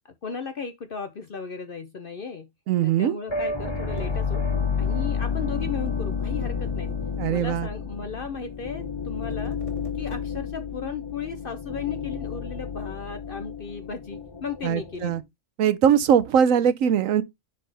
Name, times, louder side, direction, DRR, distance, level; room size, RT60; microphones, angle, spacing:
voice 1, 0.2-2.5 2.8-4.4 4.8-6.9 7.3-9.6 9.9-15.2, left 5 dB, 50° left, 0.8 m, -35 dB
voice 2, 2.7-3.2 7.2-7.7 14.6-15.2 15.6-17.2, right 8 dB, 75° right, 1.1 m, -21 dB
sound 1, 3.3-15.2, left 5 dB, 20° left, 1.0 m, -30 dB
sound 2, 4.0-10.7, equal, 25° right, 1.7 m, -46 dB
10.0 x 4.1 x 3.4 m
omnidirectional pair, 1.4 m